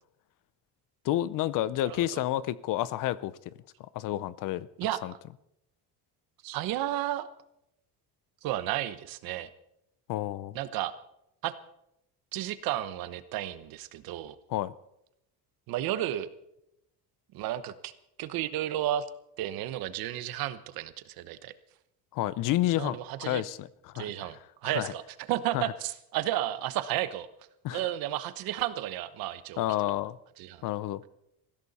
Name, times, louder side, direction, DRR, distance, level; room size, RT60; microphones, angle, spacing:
voice 1, 1.0-3.5 3.9-4.7 5.0-5.1 10.1-10.6 14.5-14.7 22.1-24.3 24.6-24.9 25.5-25.6 27.6-27.8 29.6-30.2 30.6-31.0, left 14 dB, 55° left, 18 dB, 0.6 m, -30 dB
voice 2, 1.8-2.2 4.8-5.0 6.4-7.3 8.4-9.5 10.5-10.9 11.4-11.5 12.3-14.4 15.7-16.3 17.3-17.9 18.2-19.0 19.4-21.5 22.8-23.4 23.9-25.0 25.3-27.3 27.7-29.6 30.4-30.7, right 13 dB, 65° right, 13 dB, 1.1 m, -32 dB
20.5 x 16.0 x 4.2 m, 0.82 s
cardioid pair, 170°, 39 cm